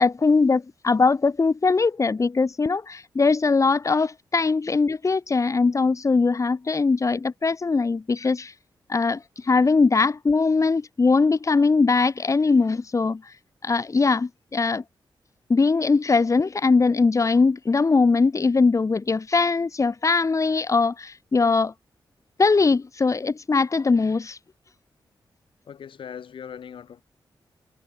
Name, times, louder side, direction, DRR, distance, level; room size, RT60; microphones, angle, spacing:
voice 1, 0.0-8.5 8.9-13.2 13.6-14.8 15.5-21.7 22.4-24.4, left 4 dB, 40° left, 3.4 m, -21 dB
voice 2, 25.7-27.0, left 8 dB, 90° left, 8.0 m, -39 dB
wide cardioid pair, 100°, 8 cm